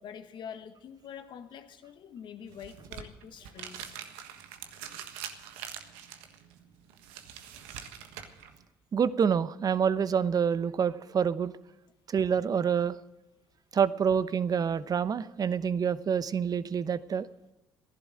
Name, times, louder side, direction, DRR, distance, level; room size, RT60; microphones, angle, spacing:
voice 1, 0.0-4.0, left 8 dB, 60° left, 1.6 m, -45 dB
sound 1, 2.5-8.6, right 9 dB, 80° right, 1.4 m, -44 dB
voice 2, 8.9-11.5 12.1-13.0 13.7-17.3, right 7 dB, 45° right, 0.9 m, -27 dB
15.5 x 11.5 x 7.7 m
hypercardioid pair, 60°, 9 cm